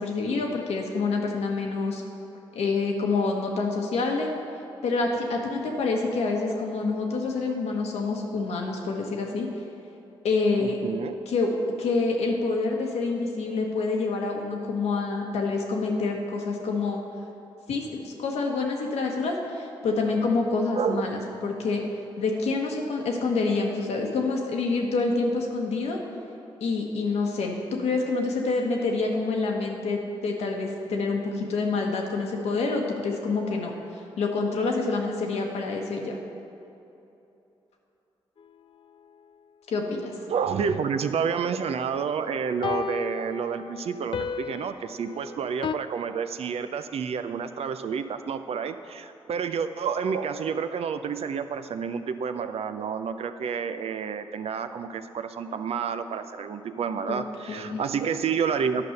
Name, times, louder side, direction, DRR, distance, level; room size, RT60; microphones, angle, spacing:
voice 1, 0.0-2.0 2.5-4.3 4.8-9.5 10.2-10.8 11.3-11.5 11.8-17.0 17.7-21.8 22.2-26.0 26.6-36.2 39.7-40.1 57.1-57.2 57.5-57.8, left 3 dB, 80° left, 1 dB, 1.2 m, -27 dB
voice 2, 10.6-11.2 20.8-21.3 40.3-58.9, right 6 dB, 65° right, 10 dB, 0.5 m, -29 dB
sound 1, 38.4-38.5 42.6-45.8, left 6 dB, 50° left, 0.4 m, -33 dB
10.0 x 5.4 x 6.6 m, 2.9 s
supercardioid pair, 50°, 11 cm